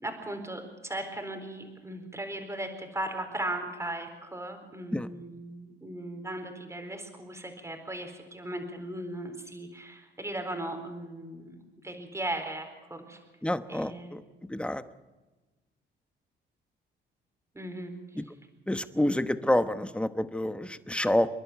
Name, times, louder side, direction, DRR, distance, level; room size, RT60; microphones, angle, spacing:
voice 1, 0.0-13.2 13.7-14.2 17.5-18.3, right 1 dB, 15° right, 5 dB, 4.2 m, -37 dB
voice 2, 13.4-14.2 14.5-14.8 18.2-18.3 18.7-21.3, left 1 dB, 5° left, 11 dB, 1.0 m, -28 dB
28.0 x 11.0 x 9.2 m, 1.2 s
cardioid pair, 90°, 20 cm